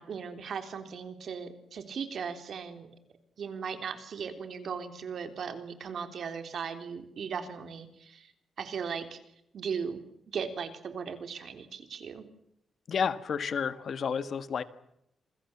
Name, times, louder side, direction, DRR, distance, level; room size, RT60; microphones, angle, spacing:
voice 1, 0.0-2.9 3.4-8.3 8.6-9.2 9.5-10.0 10.3-12.3, right 6 dB, 60° right, 8 dB, 3.8 m, -37 dB
voice 2, 12.9-14.6, left 6 dB, 55° left, 13 dB, 1.6 m, -31 dB
27.5 x 22.0 x 7.4 m, 0.77 s
cardioid pair, 130°, 0 cm